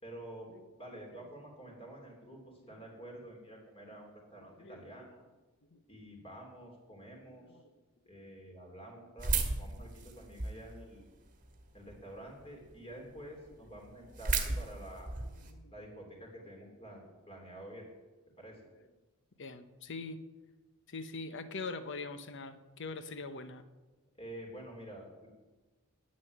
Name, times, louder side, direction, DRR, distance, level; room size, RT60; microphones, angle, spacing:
voice 1, 0.0-0.5 0.8-5.2 5.9-7.4 8.0-9.3 9.6-11.1 11.7-15.1 15.7-17.0 17.3-17.9 18.4-18.6 24.2-25.3, right 1 dB, 25° left, 0 dB, 3.2 m, -49 dB
voice 2, 7.0-7.7 15.4-15.7 19.4-20.2 20.9-23.6, left 3 dB, 55° left, 11 dB, 0.9 m, -43 dB
sound 1, 9.2-10.7 11.3-11.9 12.4-12.5 12.7-12.8 13.2-13.3 13.5-15.5, right 4 dB, 35° right, 1.4 m, -34 dB
9.8 x 7.6 x 9.3 m, 1.2 s
head